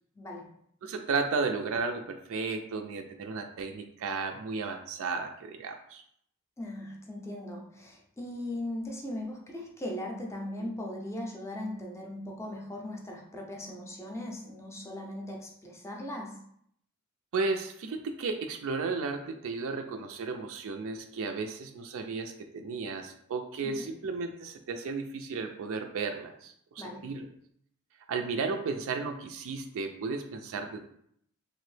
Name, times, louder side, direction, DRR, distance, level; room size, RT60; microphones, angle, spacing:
voice 1, 0.1-0.5 6.6-16.4 23.6-23.9 26.8-27.1, left 1 dB, 15° left, 0 dB, 0.5 m, -39 dB
voice 2, 0.8-6.0 17.3-27.3 28.1-30.8, right 4 dB, 65° right, 5 dB, 0.3 m, -34 dB
2.9 x 2.6 x 3.2 m, 0.69 s
head